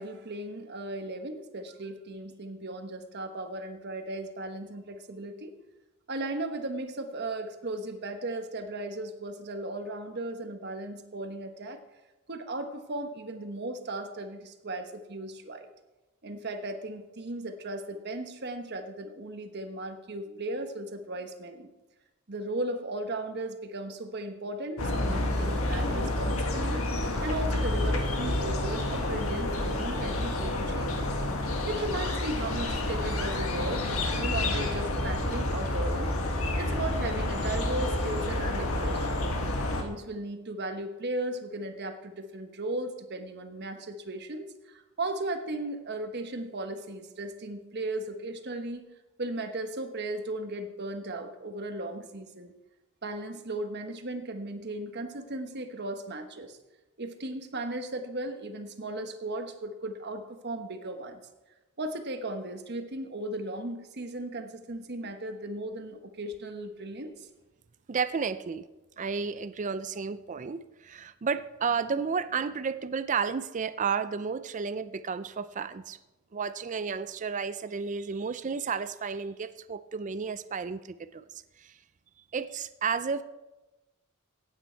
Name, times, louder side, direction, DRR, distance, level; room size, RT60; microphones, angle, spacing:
voice 1, 0.0-5.5 6.1-11.8 12.3-15.7 16.2-21.7 22.3-31.2 31.7-36.1 36.6-39.3 39.7-48.9 49.2-52.5 53.0-56.6 57.0-61.2 61.8-67.3, right 2 dB, 50° right, 7 dB, 1.2 m, -36 dB
sound 1, 24.8-39.8, left 1 dB, 85° left, 1.7 m, -29 dB
voice 2, 67.9-68.7 69.0-76.0 76.3-81.2 81.6-81.8 82.3-83.2, right 5 dB, 35° right, 14 dB, 0.4 m, -32 dB
16.5 x 9.0 x 4.5 m, 1.1 s
head